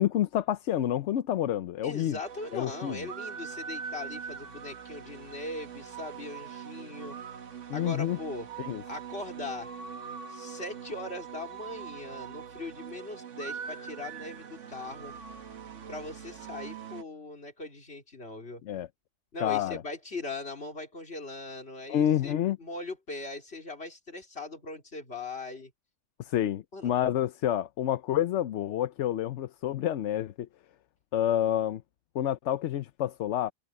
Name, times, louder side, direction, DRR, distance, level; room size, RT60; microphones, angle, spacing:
voice 1, 0.0-2.2 2.5-3.0 7.7-8.2 8.6-8.8 18.6-18.9 19.4-19.8 21.9-22.6 26.2-30.5 31.1-31.8 32.1-33.5, left 11 dB, 75° left, 1.0 m, -28 dB
voice 2, 1.8-7.2 7.7-8.5 8.9-9.7 10.3-15.1 15.9-18.6 19.3-25.7 26.7-26.9, left 2 dB, 60° left, 3.8 m, -40 dB
sound 1, 2.2-17.0, right 7 dB, 85° right, 1.6 m, -42 dB
omnidirectional pair, 1.2 m